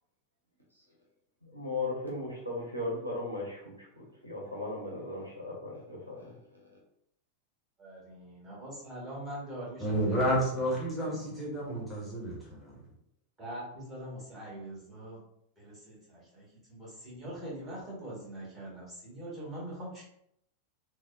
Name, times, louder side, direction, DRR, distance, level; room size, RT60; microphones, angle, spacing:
voice 1, 1.4-6.4, left 2 dB, 90° right, -4 dB, 0.7 m, -37 dB
voice 2, 7.8-10.4 11.0-11.8 13.4-15.2 15.6-20.1, right 1 dB, 20° right, -6 dB, 1.4 m, -43 dB
voice 3, 9.8-12.8, right 1 dB, 5° left, -6 dB, 1.1 m, -31 dB
3.3 x 2.0 x 2.5 m, 0.75 s
figure-of-eight pair, 90°, 0 cm